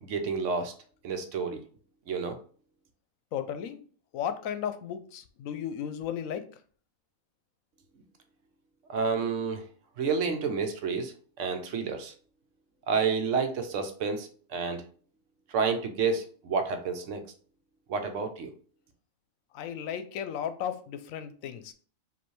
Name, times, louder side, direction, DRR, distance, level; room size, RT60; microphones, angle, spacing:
voice 1, 0.0-0.7 1.0-1.6 2.1-2.4 8.9-9.6 10.0-12.1 12.9-14.8 15.5-17.2 17.9-18.5, right 5 dB, 70° right, 7 dB, 1.0 m, -29 dB
voice 2, 3.3-3.8 4.1-6.4 19.5-21.7, left 9 dB, 80° left, 10 dB, 1.0 m, -34 dB
5.3 x 2.7 x 3.1 m, 0.43 s
omnidirectional pair, 1.4 m